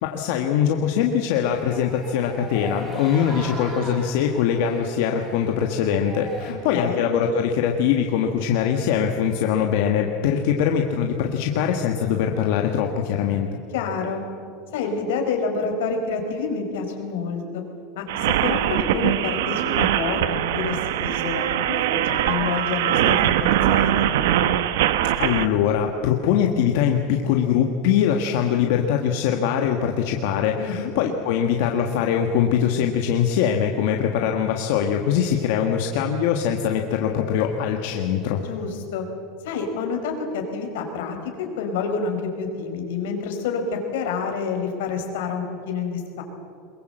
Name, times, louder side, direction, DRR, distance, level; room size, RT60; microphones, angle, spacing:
voice 1, 0.0-13.5 25.2-38.4, left 8 dB, 60° left, 3 dB, 1.5 m, -22 dB
sound 1, 1.4-6.5, right 2 dB, 20° right, 5.5 m, -38 dB
voice 2, 13.7-14.2 14.7-17.6 17.9-22.0 22.2-23.2 23.7-24.1 30.6-30.9 38.4-39.0 39.4-46.2, left 5 dB, 85° left, 4 dB, 4.4 m, -28 dB
sound 2, 18.1-25.5, right 11 dB, 80° right, 1.0 m, -22 dB
22.5 x 22.0 x 7.9 m, 2.6 s
supercardioid pair, 170°, 0 cm